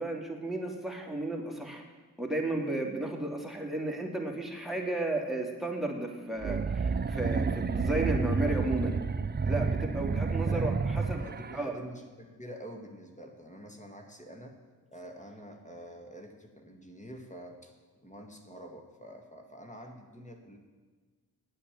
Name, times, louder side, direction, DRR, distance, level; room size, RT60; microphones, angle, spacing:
voice 1, 0.0-1.8 2.2-9.0 9.4-11.2 11.5-11.8, right 1 dB, ahead, 0 dB, 2.8 m, -33 dB
sound 1, 6.4-11.6, right 5 dB, 25° right, 0.6 m, -30 dB
voice 2, 10.5-14.6 14.9-17.7 18.0-20.6, equal, 20° left, 3 dB, 1.9 m, -47 dB
9.5 x 8.5 x 7.3 m, 1.4 s
supercardioid pair, 45°, 38 cm